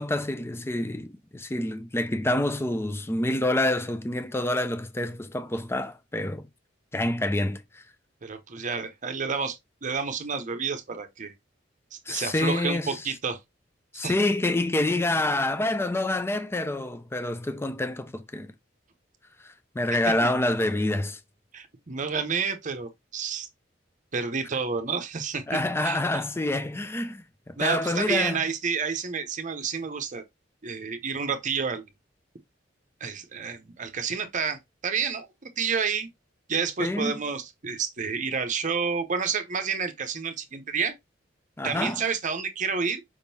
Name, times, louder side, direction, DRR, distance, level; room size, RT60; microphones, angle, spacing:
voice 1, 0.0-6.5 6.9-7.8 12.1-13.0 13.9-18.5 19.4-21.2 25.5-28.4 36.8-37.2 41.6-42.0, left 1 dB, 15° left, 0.4 m, -27 dB
voice 2, 8.2-11.3 11.9-13.4 13.9-14.1 20.0-20.1 21.5-23.5 24.1-26.2 27.6-30.2 30.6-31.9 33.0-35.3 35.6-36.1 36.5-40.9 41.6-43.0, right 5 dB, 45° right, 0.7 m, -30 dB
5.1 x 3.6 x 2.6 m
head